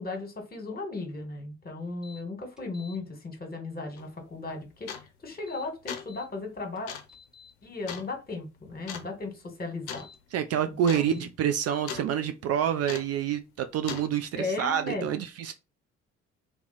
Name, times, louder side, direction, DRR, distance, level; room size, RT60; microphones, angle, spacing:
voice 1, 0.0-6.9 7.6-10.0 10.9-11.2 14.3-15.1, left 3 dB, 25° left, 1.4 m, -36 dB
sound 1, 2.0-2.2 2.6-3.0 5.3-6.3 6.8-7.5 9.8-10.2 11.0-11.2, left 5 dB, ahead, 0.9 m, -52 dB
sound 2, 4.0-4.1 4.9-5.2 5.7-6.2 6.9-7.1 7.9-8.1 8.9-9.1 9.9-10.1 10.4-10.5 10.8-11.1 11.3-12.1 12.9-13.2 13.9-14.1, left 8 dB, 75° left, 0.6 m, -38 dB
voice 2, 10.3-15.5, right 9 dB, 45° right, 0.4 m, -28 dB
2.7 x 2.2 x 4.0 m
figure-of-eight pair, 45°, 34 cm